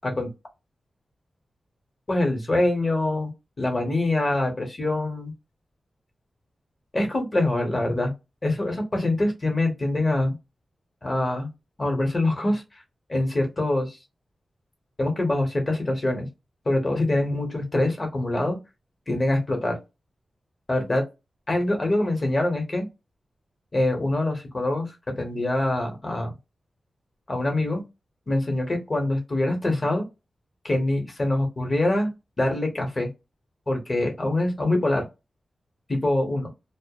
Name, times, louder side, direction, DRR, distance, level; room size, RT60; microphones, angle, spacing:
voice 1, 2.1-3.3 3.6-5.3 6.9-8.1 8.4-10.4 11.0-11.5 11.8-12.8 13.1-14.0 15.0-16.3 16.6-18.6 19.1-19.8 20.7-21.0 21.5-22.9 23.7-26.3 27.3-27.8 28.3-30.1 30.6-32.1 32.4-33.1 33.7-35.0 35.9-36.5, left 1 dB, 35° left, 0.9 m, -24 dB
2.2 x 2.0 x 2.9 m
wide cardioid pair, 135°, 0 cm